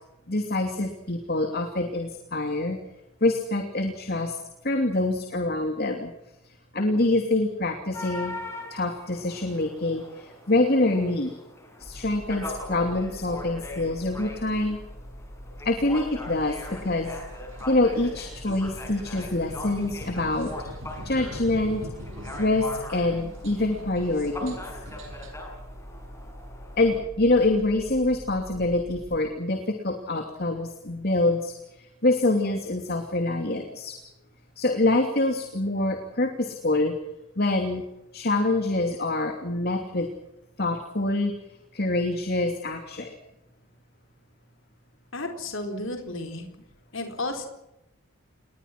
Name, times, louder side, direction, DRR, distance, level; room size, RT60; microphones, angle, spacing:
voice 1, 0.3-2.8 3.2-4.4 4.6-6.1 6.7-8.4 8.7-11.3 11.8-14.8 15.6-17.2 17.7-20.5 21.0-21.8 22.4-24.6 26.8-34.0 34.6-36.9 37.4-37.8 38.1-40.1 40.6-41.4 41.7-43.2, left 2 dB, 45° left, 5 dB, 2.7 m, -25 dB
sound 1, 7.9-27.0, left 2 dB, 15° left, 6.1 m, -41 dB
sound 2, 11.8-29.2, equal, 10° right, 4.6 m, -44 dB
sound 3, 16.2-25.3, equal, 60° right, 7.7 m, -44 dB
voice 2, 45.1-46.4 46.9-47.5, left 2 dB, 60° left, 4 dB, 4.4 m, -32 dB
30.0 x 21.0 x 6.0 m, 0.90 s
head